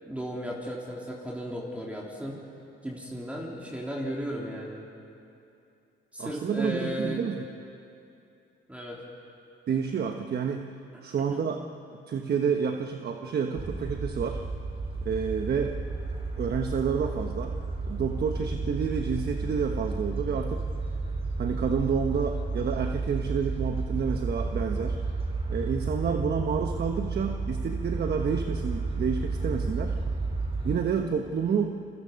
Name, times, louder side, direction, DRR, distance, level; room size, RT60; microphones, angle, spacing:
voice 1, 0.0-2.4 2.8-4.8 6.1-7.3 8.7-9.0, equal, 5° right, -3 dB, 3.4 m, -35 dB
voice 2, 6.2-7.5 9.7-10.7 11.0-11.6 12.1-14.4 15.0-15.8 16.4-17.6 17.9-20.7 21.4-25.0 25.5-29.9 30.6-31.8, right 6 dB, 55° right, 4 dB, 1.2 m, -29 dB
sound 1, 13.6-30.8, right 3 dB, 30° right, 4.7 m, -32 dB
30.0 x 22.5 x 5.4 m, 2.7 s
cardioid pair, 90°, 20 cm